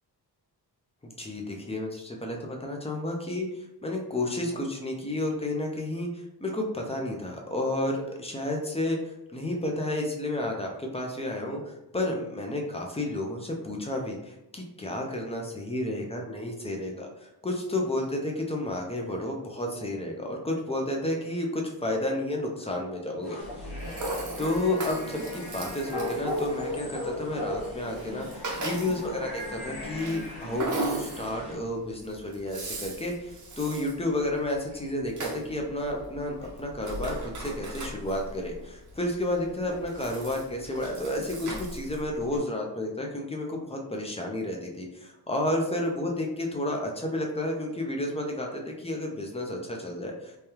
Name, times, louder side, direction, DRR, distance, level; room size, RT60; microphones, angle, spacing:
voice 1, 1.0-3.5 3.8-23.4 24.4-50.4, left 1 dB, 15° left, 1 dB, 0.5 m, -31 dB
sound 1, 23.2-31.6, left 1 dB, 75° left, 1.2 m, -37 dB
Rattle (instrument), 23.4-42.4, right 1 dB, 45° right, 0.7 m, -39 dB
3.2 x 2.3 x 2.8 m, 0.92 s
wide cardioid pair, 140°, 41 cm